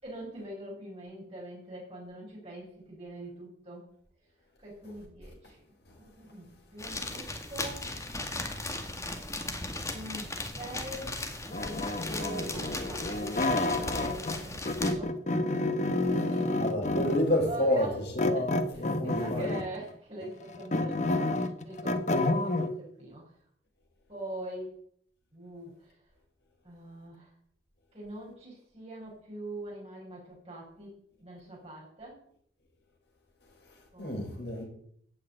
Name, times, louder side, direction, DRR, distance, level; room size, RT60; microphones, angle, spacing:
voice 1, 0.0-3.9 4.6-5.6 6.0-7.9 9.9-15.2 16.1-16.6 17.5-18.0 18.3-23.3 24.1-24.7 25.3-25.9 26.6-27.3 27.9-30.9 31.2-32.2 33.9-34.6, right 1 dB, 35° right, -4 dB, 6.1 m, -43 dB
sound 1, 6.8-14.9, left 2 dB, 20° left, 2.0 m, -37 dB
sound 2, 11.5-14.4 14.6-17.3 18.2-19.8 20.2-22.7, left 2 dB, 40° left, 1.2 m, -29 dB
voice 2, 16.6-17.9 18.1-19.5 34.0-34.6, equal, 70° left, -1 dB, 6.1 m, -29 dB
15.0 x 6.7 x 9.1 m, 0.64 s
head